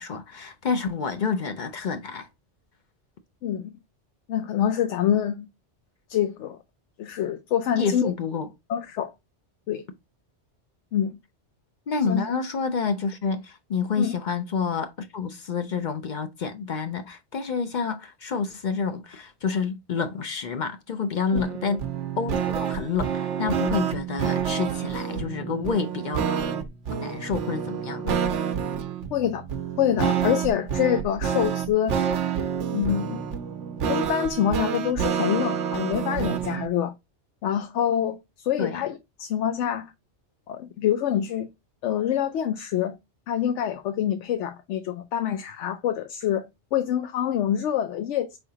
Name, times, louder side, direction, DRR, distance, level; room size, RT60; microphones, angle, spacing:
voice 1, 0.0-2.3 7.8-8.5 11.9-21.8 22.2-26.4 26.9-28.2 38.6-38.8, left 5 dB, 55° left, 0.6 m, -28 dB
voice 2, 3.4-3.7 4.3-5.5 6.1-6.6 7.0-8.1 8.7-9.1 9.7-9.8 10.9-11.1 12.1-12.2 14.0-14.2 21.3-21.4 29.1-29.4 29.8-31.9 32.7-33.2 33.9-36.9 37.4-39.9 40.5-41.5 41.8-42.9 43.3-48.4, left 10 dB, 85° left, 0.9 m, -26 dB
sound 1, 21.4-36.7, right 8 dB, 85° right, 1.0 m, -28 dB
4.6 x 3.5 x 2.7 m
omnidirectional pair, 1.2 m